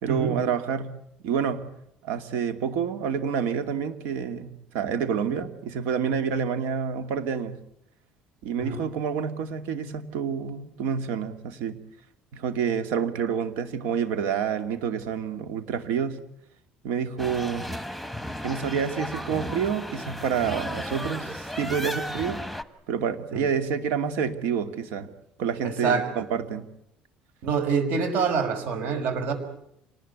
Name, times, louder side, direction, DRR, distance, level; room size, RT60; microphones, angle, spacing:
voice 1, 0.0-0.9 1.2-1.6 2.0-7.5 8.4-11.8 12.3-16.2 16.8-17.7 18.4-22.5 22.9-25.1 25.4-26.7, right 7 dB, 85° right, 9 dB, 2.6 m, -28 dB
sound 1, 17.2-22.6, left 1 dB, ahead, 1.2 m, -34 dB
voice 2, 25.6-26.1 27.4-29.3, right 5 dB, 65° right, 7 dB, 5.8 m, -26 dB
26.5 x 19.5 x 8.3 m, 0.78 s
cardioid pair, 155°, 3 cm